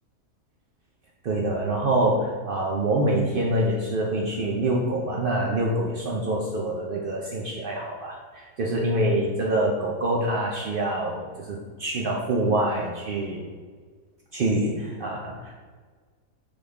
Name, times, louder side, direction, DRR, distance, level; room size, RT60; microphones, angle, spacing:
voice 1, 1.2-13.4 14.3-15.5, right 1 dB, 75° right, -2 dB, 0.5 m, -25 dB
3.9 x 3.3 x 3.4 m, 1.5 s
omnidirectional pair, 1.5 m